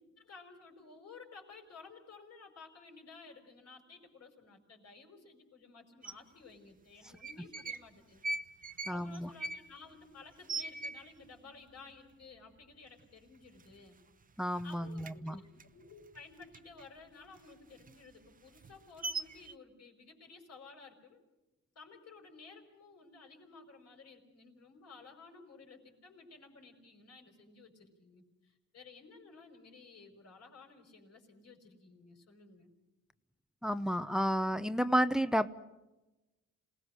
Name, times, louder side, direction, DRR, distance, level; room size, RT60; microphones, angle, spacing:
voice 1, 0.2-8.2 8.6-14.0 14.6-21.2 21.8-32.7, left 4 dB, 55° left, 3 dB, 5.3 m, -55 dB
sound 1, 6.0-6.1 7.1-7.9 8.2-11.4 11.7-11.8 12.1-12.6 13.0-13.1 13.4-14.2 14.5-16.9 17.2-19.5, right 3 dB, 25° right, 0.9 m, -41 dB
voice 2, 8.9-9.3 14.4-15.4 33.6-35.5, equal, ahead, 13 dB, 0.8 m, -31 dB
27.5 x 19.0 x 6.4 m, 1.0 s
cardioid pair, 90°, 30 cm